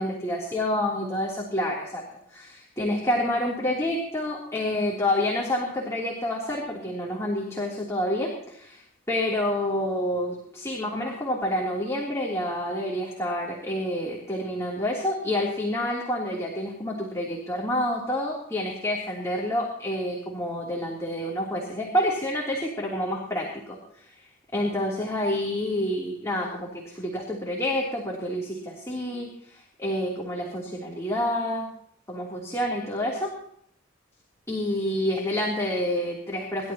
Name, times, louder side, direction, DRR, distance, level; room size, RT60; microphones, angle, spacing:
voice 1, 0.0-24.2 24.5-31.7 32.1-33.3 34.5-36.7, left 1 dB, 15° left, -3 dB, 3.1 m, -28 dB
28.0 x 13.0 x 2.9 m, 0.70 s
head